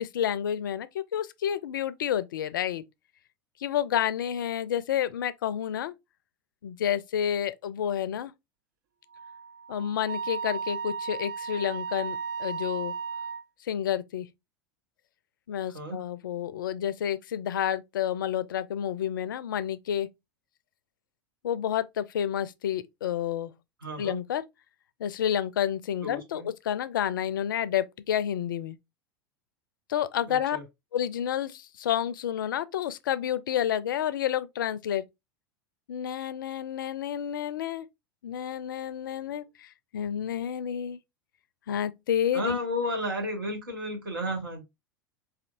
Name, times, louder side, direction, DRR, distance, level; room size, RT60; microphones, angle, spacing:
voice 1, 0.0-2.8 3.6-5.9 6.6-8.3 9.7-12.9 13.7-14.3 15.5-20.1 21.4-23.5 24.0-24.4 25.0-28.8 29.9-30.6 30.9-35.0 35.9-37.9 38.2-41.0 41.7-42.6, left 10 dB, 65° left, 0.4 m, -30 dB
Wind instrument woodwind instrument, 9.1-13.4, right 5 dB, 55° right, 0.4 m, -35 dB
voice 2, 15.7-16.1 23.8-24.2 26.0-26.5 30.3-30.6 42.3-44.6, equal, 75° right, 1.3 m, -33 dB
4.2 x 2.6 x 2.5 m
figure-of-eight pair, 85°, 12 cm